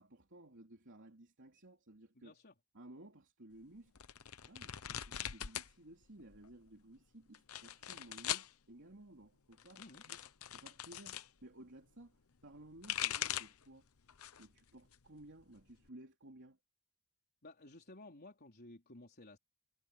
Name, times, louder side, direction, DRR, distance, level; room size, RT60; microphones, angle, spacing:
voice 1, 0.0-2.3 2.7-3.9 4.5-10.2 10.5-13.9 14.4-16.6, right 1 dB, 55° right, 3.4 m, -57 dB
voice 2, 2.1-2.5 9.8-10.0 17.4-19.4, left 2 dB, 45° left, 4.0 m, -55 dB
sound 1, 4.0-5.7 6.0-6.7 7.3-8.5 9.5-11.3 12.5-13.6 14.1-14.5 14.9-15.9, left 11 dB, 70° left, 0.9 m, -41 dB
head